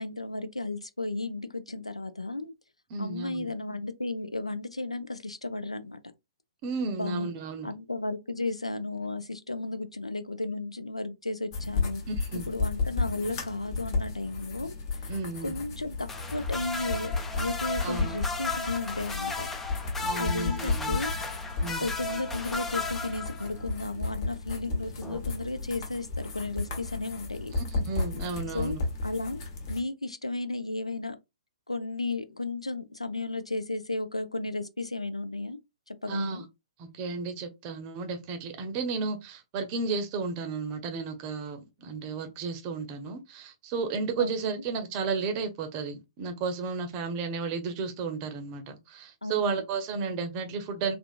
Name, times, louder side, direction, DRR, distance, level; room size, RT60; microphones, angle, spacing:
voice 1, 0.0-2.5 3.0-6.0 6.8-7.3 7.6-12.0 12.3-14.7 15.4-19.5 20.2-21.1 21.8-27.5 28.5-28.7 29.0-29.4 29.7-31.2 31.7-35.6 35.9-36.4 44.2-44.3 49.2-49.5, left 2 dB, 80° left, 0.4 m, -34 dB
voice 2, 2.9-3.5 6.6-7.7 12.1-12.5 15.1-15.5 17.8-18.2 20.0-21.0 21.6-21.8 27.5-28.8 36.1-36.4 36.8-50.9, right 4 dB, 30° right, 0.7 m, -33 dB
sound 1, 11.5-29.8, left 3 dB, 40° left, 0.9 m, -33 dB
sound 2, 16.1-23.7 25.0-25.2, left 3 dB, 10° left, 0.4 m, -35 dB
3.6 x 2.4 x 2.3 m
figure-of-eight pair, 120°, 3 cm